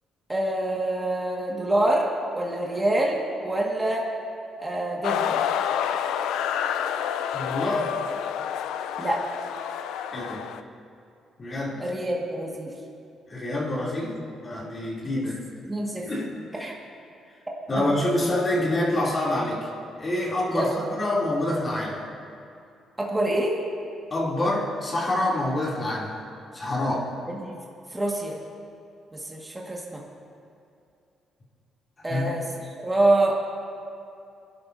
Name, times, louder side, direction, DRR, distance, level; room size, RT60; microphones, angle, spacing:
voice 1, 0.3-4.1 4.6-5.4 9.0-9.2 11.8-12.7 15.0-15.3 15.7-16.1 16.6-16.8 17.8-17.9 20.5-20.8 23.0-23.6 27.3-27.5 27.9-28.4 29.1-30.0 32.0-32.4 32.8-33.4, right 1 dB, 15° right, -3 dB, 1.9 m, -26 dB
sound 1, 5.0-10.6, left 9 dB, 90° left, 0.4 m, -28 dB
voice 2, 7.3-7.9 10.1-10.5 11.4-11.8 13.3-15.4 16.0-16.3 16.6-16.7 17.7-19.7 20.0-22.1 24.1-26.2 26.5-27.1 32.0-32.3, left 1 dB, 35° left, -5 dB, 3.2 m, -27 dB
24.0 x 11.5 x 2.8 m, 2.6 s
cardioid pair, 90°, 0 cm